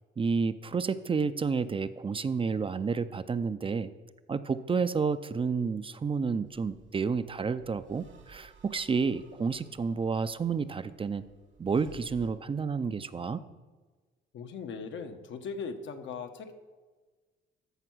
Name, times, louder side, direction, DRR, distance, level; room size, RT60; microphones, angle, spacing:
voice 1, 0.2-3.9 4.3-11.2 11.6-13.4, right 5 dB, 25° right, 13 dB, 0.4 m, -30 dB
sound 1, 6.4-12.3, right 5 dB, 65° right, 1.3 m, -57 dB
voice 2, 14.3-16.5, left 5 dB, 75° left, 7 dB, 1.1 m, -39 dB
13.5 x 4.6 x 6.2 m, 1.3 s
cardioid pair, 90°, 20 cm